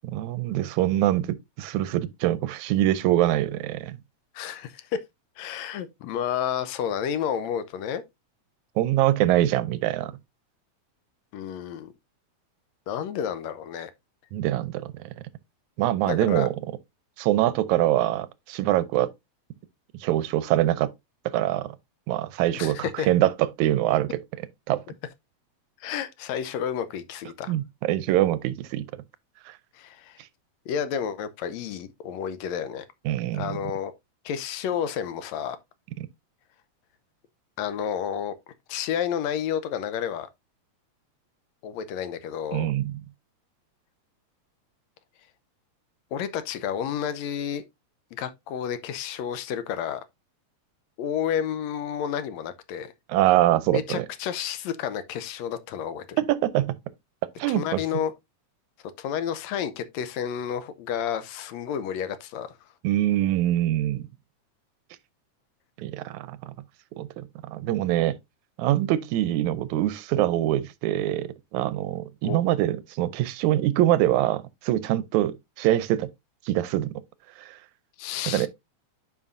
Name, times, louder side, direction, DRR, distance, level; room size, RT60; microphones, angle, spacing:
voice 1, 0.0-4.0 8.8-10.1 14.3-15.1 15.8-16.6 17.2-19.1 20.0-20.9 21.3-21.7 22.1-24.2 24.7-24.8 27.5-28.9 29.5-29.6 33.1-33.6 42.5-42.9 53.1-54.1 56.2-56.8 57.4-57.8 62.8-64.1 65.8-66.5 67.0-68.2 68.6-76.1 76.5-76.9 77.4-77.6 78.3-78.5, right 14 dB, 85° right, 2.0 m, -24 dB
voice 2, 4.3-4.9 5.4-8.0 11.3-11.9 12.9-13.9 16.1-16.5 22.6-23.1 25.8-27.5 29.8-30.2 30.7-32.9 33.3-33.9 34.3-35.6 37.6-38.3 38.7-40.3 41.6-42.7 46.1-47.6 48.2-50.0 51.0-52.9 53.7-56.2 57.5-58.1 59.0-62.6 72.2-72.4 78.0-78.5, left 8 dB, 75° left, 1.9 m, -30 dB
9.7 x 5.4 x 2.5 m
omnidirectional pair, 3.3 m